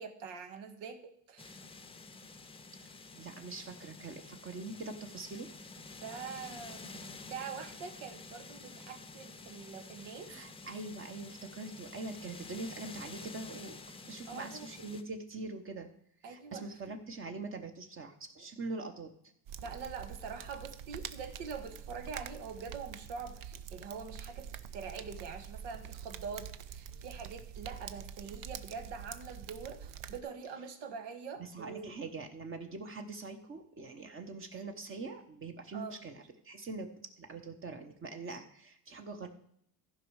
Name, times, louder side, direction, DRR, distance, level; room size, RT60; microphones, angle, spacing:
voice 1, 0.0-1.6 6.0-10.4 14.3-14.7 16.2-16.8 19.6-24.5 24.7-31.9 35.7-36.1, right 5 dB, 80° right, 7 dB, 1.5 m, -44 dB
sound 1, 1.4-15.0, left 3 dB, 15° left, 0.7 m, -50 dB
voice 2, 2.8-5.5 10.3-13.8 14.1-15.9 16.2-19.1 31.4-36.2 36.4-36.9 37.2-39.3, right 3 dB, 30° right, 5 dB, 1.1 m, -43 dB
sound 2, 19.5-30.2, right 9 dB, 55° right, 0.7 m, -46 dB
14.5 x 5.4 x 4.8 m, 0.70 s
cardioid pair, 120°, 40 cm